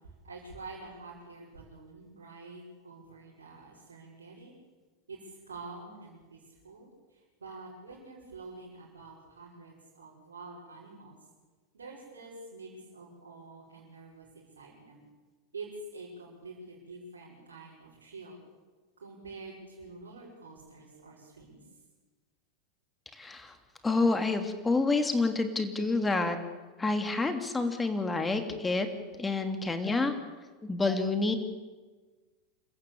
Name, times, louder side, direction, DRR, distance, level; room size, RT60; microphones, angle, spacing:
voice 1, 0.2-4.5 5.1-11.2 11.7-15.0 15.5-18.4 19.0-21.6, right 3 dB, 85° right, -6 dB, 5.5 m, -47 dB
voice 2, 23.2-23.5 23.8-26.4 26.8-28.9 29.2-30.1 30.6-31.4, left 3 dB, 15° left, 7 dB, 3.1 m, -28 dB
27.0 x 15.0 x 8.7 m, 1.3 s
hypercardioid pair, 90°, 0 cm